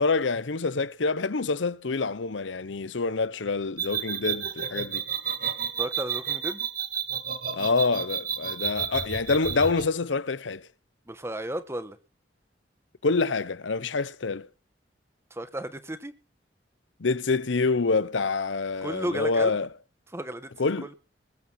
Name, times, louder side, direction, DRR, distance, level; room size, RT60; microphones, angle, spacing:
voice 1, 0.0-5.0 7.5-10.7 13.0-14.5 17.0-19.7 20.6-20.9, left 4 dB, 85° left, 0.8 m, -26 dB
sound 1, 3.8-9.9, right 8 dB, 50° right, 2.2 m, -31 dB
voice 2, 5.8-6.6 11.1-12.0 15.3-16.1 18.8-19.6 20.1-20.5 20.8-20.9, right 1 dB, 15° right, 1.4 m, -33 dB
20.5 x 8.6 x 5.8 m
head